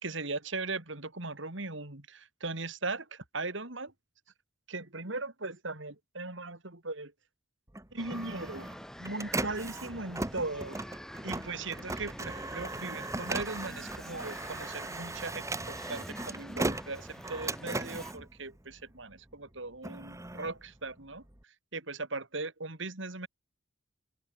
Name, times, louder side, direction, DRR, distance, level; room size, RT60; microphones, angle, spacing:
voice 1, 0.0-3.9 4.7-7.1 7.9-8.7 9.0-10.8 11.2-21.2 21.7-23.3, right 3 dB, 65° right, 3.1 m, -38 dB
Printer, 7.7-19.1 19.6-21.4, right 2 dB, 15° right, 1.5 m, -38 dB
sound 1, 8.0-18.1, equal, 5° left, 5.0 m, -47 dB
head